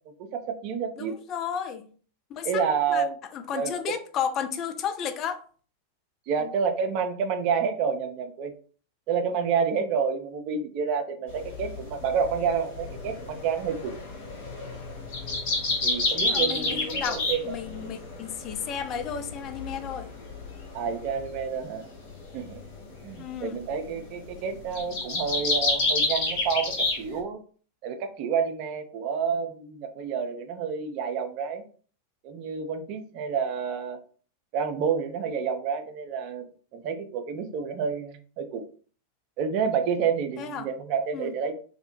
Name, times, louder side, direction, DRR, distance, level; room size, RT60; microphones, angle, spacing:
voice 1, 0.2-1.1 2.4-3.2 3.5-3.8 6.3-8.5 9.1-13.9 15.8-17.6 20.7-21.8 22.3-22.6 23.0-27.4 27.8-31.6 32.2-34.0 34.5-36.4 36.7-38.6 39.4-41.5, right 6 dB, 45° right, 0.4 m, -29 dB
voice 2, 1.0-1.9 2.3-2.6 2.9-3.0 3.3-5.4 6.4-6.5 16.3-20.1 23.2-23.6 40.4-40.7 41.1-41.3, left 8 dB, 35° left, 0.3 m, -33 dB
sound 1, 11.3-27.2, left 2 dB, 50° left, 0.9 m, -31 dB
2.6 x 2.0 x 2.8 m
figure-of-eight pair, 90°, 0 cm